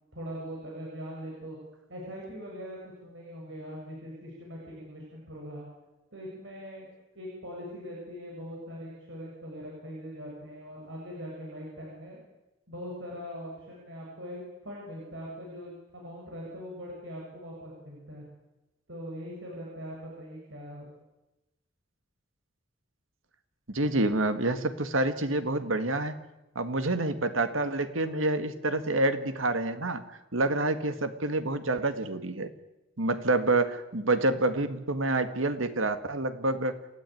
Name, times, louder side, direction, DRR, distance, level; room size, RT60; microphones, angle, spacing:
voice 1, 0.1-1.6 1.9-5.7 6.1-6.9 7.1-12.2 12.7-18.2 18.9-20.9, equal, 75° right, -3 dB, 7.2 m, -41 dB
voice 2, 23.7-26.1 26.6-30.0 30.3-32.5 33.0-36.7, right 2 dB, 90° right, 9 dB, 2.0 m, -27 dB
28.5 x 14.5 x 9.4 m, 0.99 s
head